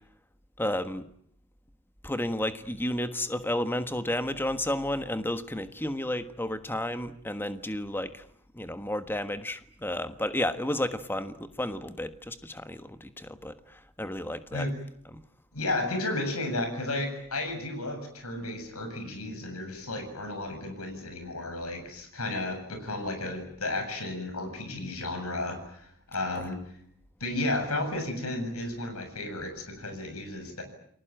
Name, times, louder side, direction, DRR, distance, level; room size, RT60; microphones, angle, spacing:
voice 1, 0.6-1.1 2.0-8.2 8.5-14.7 15.0-15.2 26.3-26.5, left 1 dB, 10° left, 10 dB, 1.4 m, -32 dB
voice 2, 15.5-26.6 27.2-30.6, left 2 dB, 85° left, 7 dB, 7.7 m, -33 dB
29.5 x 21.0 x 9.1 m, 0.68 s
head